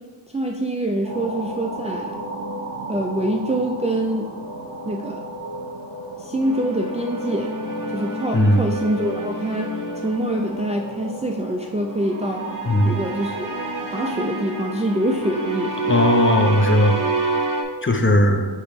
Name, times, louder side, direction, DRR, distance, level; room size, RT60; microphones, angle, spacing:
voice 1, 0.3-2.2 2.9-4.3 4.8-5.2 6.2-7.5 7.9-9.7 10.0-12.5 12.8-13.5 13.9-15.9, right 1 dB, 15° right, 1 dB, 0.4 m, -25 dB
sound 1, 1.0-16.3, right 1 dB, 60° right, 1.7 m, -34 dB
sound 2, 6.4-10.8 12.2-17.6, right 2 dB, 40° right, 1.0 m, -28 dB
voice 2, 8.3-8.6 12.6-12.9 15.9-17.0 17.8-18.5, left 1 dB, 25° left, 4 dB, 0.7 m, -17 dB
8.9 x 3.0 x 3.5 m, 1.4 s
wide cardioid pair, 60°, 47 cm